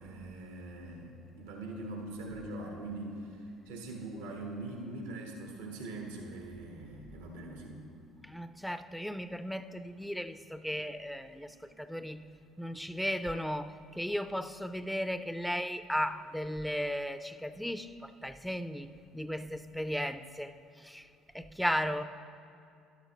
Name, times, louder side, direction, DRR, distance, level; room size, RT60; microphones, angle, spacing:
voice 1, 0.0-3.4 3.7-7.8, right 2 dB, 80° right, 0 dB, 1.3 m, -42 dB
voice 2, 8.3-12.2 12.6-18.9 19.1-20.5 20.8-21.0 21.3-22.0, equal, ahead, 12 dB, 0.5 m, -35 dB
12.0 x 11.5 x 3.1 m, 2.4 s
hypercardioid pair, 60°, 0 cm